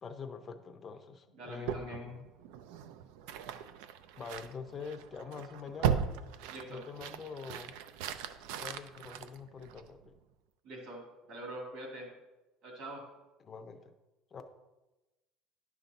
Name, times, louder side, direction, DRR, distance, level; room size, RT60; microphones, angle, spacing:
voice 1, 0.0-2.3 4.2-6.0 6.7-7.8 8.6-10.1 13.4-13.9 14.3-14.4, left 5 dB, 20° left, 6 dB, 0.5 m, -44 dB
voice 2, 1.3-2.1 6.5-6.8 10.6-11.0 11.3-12.1 12.6-13.1, right 1 dB, 55° right, 0 dB, 2.1 m, -44 dB
sound 1, 1.6-10.1, right 8 dB, 90° right, 0.5 m, -38 dB
10.5 x 5.9 x 3.9 m, 1.1 s
cardioid pair, 175°, 0 cm